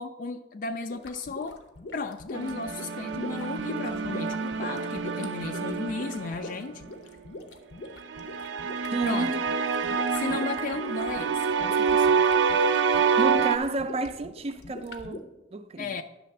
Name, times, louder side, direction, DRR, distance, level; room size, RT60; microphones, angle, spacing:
voice 1, 0.0-1.6 1.9-6.8 9.0-9.3 9.8-12.3 15.8-16.0, left 3 dB, 50° left, 0.3 m, -35 dB
sound 1, 0.9-15.2, left 2 dB, 85° left, 0.8 m, -43 dB
sound 2, 2.3-6.7 8.1-13.6, right 6 dB, 90° right, 0.5 m, -27 dB
voice 2, 8.9-9.5 12.7-15.9, right 2 dB, 35° right, 0.4 m, -31 dB
10.0 x 3.3 x 6.5 m
head